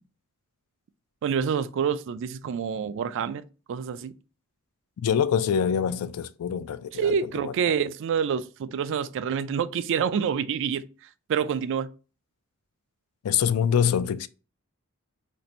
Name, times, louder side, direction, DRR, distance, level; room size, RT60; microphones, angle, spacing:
voice 1, 1.2-4.1 6.9-10.8 11.3-11.9, right 7 dB, 60° right, 0.3 m, -27 dB
voice 2, 5.0-7.8 13.2-14.3, left 8 dB, 75° left, 0.3 m, -25 dB
2.6 x 2.6 x 4.1 m
head